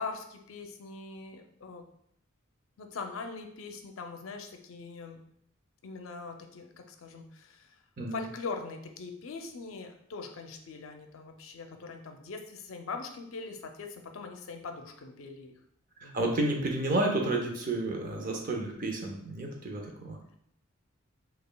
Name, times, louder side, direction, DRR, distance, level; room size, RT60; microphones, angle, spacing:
voice 1, 0.0-1.9 2.8-5.2 5.8-7.8 8.1-15.5 16.0-16.2, left 4 dB, 85° left, 5 dB, 0.5 m, -41 dB
voice 2, 16.0-20.2, right 2 dB, 45° right, 1 dB, 0.6 m, -31 dB
5.2 x 2.3 x 2.2 m, 0.70 s
head